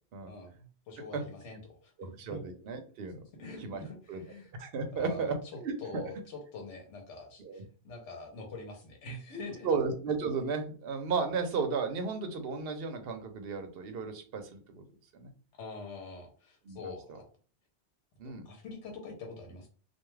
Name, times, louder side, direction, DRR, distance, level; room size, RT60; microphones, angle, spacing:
voice 1, 0.3-2.4 3.4-4.5 4.9-5.3 5.8-9.7 15.6-17.3 18.2-19.7, left 3 dB, 90° left, 0 dB, 1.0 m, -45 dB
voice 2, 2.0-3.2 3.6-3.8 4.1-4.2 4.6-5.4 5.6-6.1 7.4-7.6 9.6-14.8 15.1-15.3 16.6-16.9 18.2-18.5, right 4 dB, 65° right, 6 dB, 0.8 m, -34 dB
2.4 x 2.3 x 3.1 m, 0.40 s
omnidirectional pair, 1.2 m